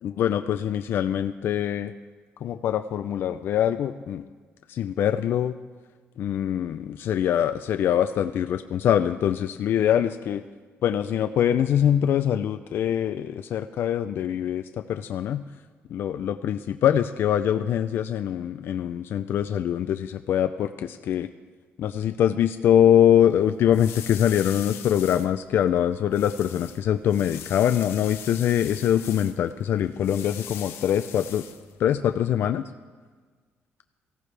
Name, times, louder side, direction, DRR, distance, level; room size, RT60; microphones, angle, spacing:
voice 1, 0.0-1.9 2.4-4.2 4.7-5.5 6.2-10.4 10.8-14.6 14.9-15.4 15.9-21.3 21.8-31.4 31.8-32.7, left 10 dB, 60° left, 9 dB, 0.4 m, -23 dB
sound 1, 22.9-32.1, left 9 dB, 75° left, 0.9 m, -42 dB
18.5 x 15.5 x 3.3 m, 1.5 s
cardioid pair, 160°, 4 cm